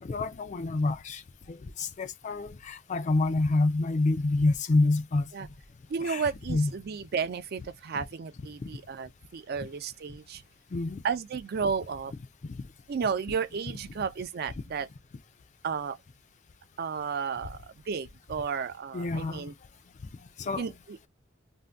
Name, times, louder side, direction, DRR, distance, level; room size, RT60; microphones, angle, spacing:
voice 1, 0.0-1.2 1.5-5.3 6.0-6.2 6.5-6.7 10.7-11.0 12.4-12.5 18.9-19.5 20.4-20.7, left 2 dB, 35° left, 0.4 m, -27 dB
voice 2, 5.9-10.4 11.0-12.1 12.9-14.9 15.6-16.0 16.8-19.5 20.6-21.0, right 6 dB, 50° right, 0.4 m, -33 dB
2.6 x 2.1 x 3.3 m
head